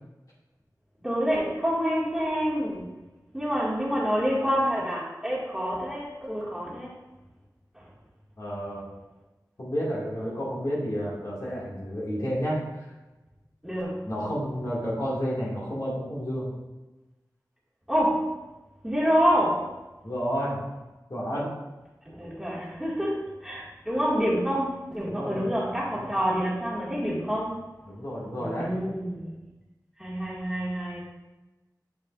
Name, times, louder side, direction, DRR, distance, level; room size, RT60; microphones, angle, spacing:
voice 1, 1.0-2.9 3.3-7.0 7.7-7.9 13.6-14.1 17.9-18.3 18.8-19.7 22.1-27.6 28.4-29.3 30.0-31.0, equal, 5° right, -7 dB, 2.1 m, -27 dB
voice 2, 8.4-8.9 9.6-12.6 14.0-16.5 20.0-20.6 21.1-21.5 25.0-25.5 25.9-26.1 27.9-28.7, equal, 55° left, -7 dB, 2.2 m, -30 dB
7.1 x 7.0 x 2.5 m, 1.1 s
wide cardioid pair, 70°, 7 cm